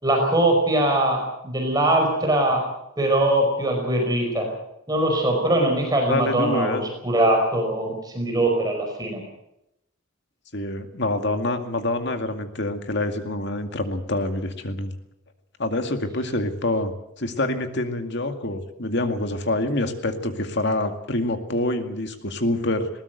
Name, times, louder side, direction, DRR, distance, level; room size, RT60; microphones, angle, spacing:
voice 1, 0.0-2.7 3.0-4.5 4.9-9.2, right 1 dB, 20° right, 2 dB, 5.0 m, -22 dB
voice 2, 6.1-6.9 10.5-14.9 15.6-22.9, left 1 dB, 55° left, 7 dB, 2.2 m, -26 dB
20.5 x 18.5 x 8.0 m, 0.83 s
head